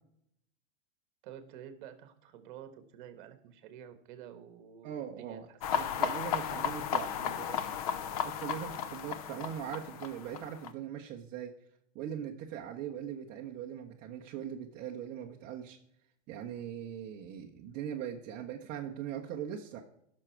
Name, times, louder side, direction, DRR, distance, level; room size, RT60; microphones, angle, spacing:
voice 1, 1.2-6.2 6.4-7.8, right 9 dB, 40° right, 10 dB, 1.3 m, -50 dB
voice 2, 4.8-5.5 5.8-7.1 7.5-7.6 8.2-11.5 11.9-15.8 16.3-19.8, right 9 dB, 25° right, -1 dB, 0.8 m, -40 dB
sound 1, 5.6-10.7, left 8 dB, 30° left, 0.4 m, -34 dB
14.5 x 6.3 x 4.4 m, 0.73 s
hypercardioid pair, 145°, 37 cm